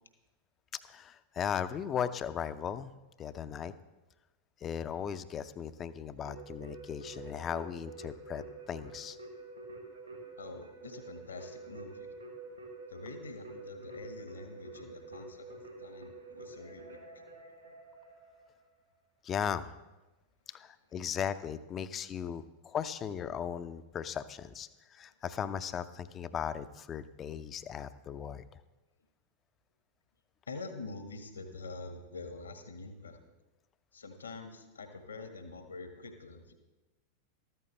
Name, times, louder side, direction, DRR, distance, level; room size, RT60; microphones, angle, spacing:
voice 1, 0.9-2.9 3.2-3.7 4.6-9.2 19.2-19.7 20.5-28.4, left 8 dB, 25° left, 13 dB, 0.6 m, -37 dB
Keyboard (musical), 6.3-18.7, right 3 dB, 85° right, 3.3 m, -48 dB
voice 2, 10.4-12.1 12.9-17.2 30.5-33.2 33.9-36.5, left 3 dB, 75° left, 7 dB, 1.5 m, -46 dB
14.0 x 13.5 x 3.3 m, 1.1 s
figure-of-eight pair, 90°, 0 cm